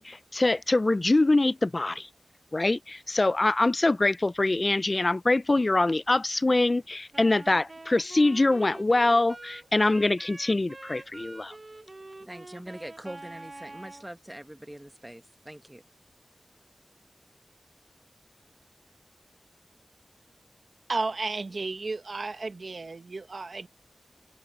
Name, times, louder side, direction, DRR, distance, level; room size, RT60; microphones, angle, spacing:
voice 1, 0.0-2.1 2.5-11.5, left 2 dB, 40° left, 0.3 m, -24 dB
Wind instrument woodwind instrument, 7.1-14.1, right 2 dB, 40° right, 0.7 m, -46 dB
voice 2, 12.2-15.8, right 1 dB, 10° right, 1.1 m, -43 dB
voice 3, 20.9-23.7, right 3 dB, 65° right, 1.1 m, -33 dB
wide cardioid pair, 80°, 0 cm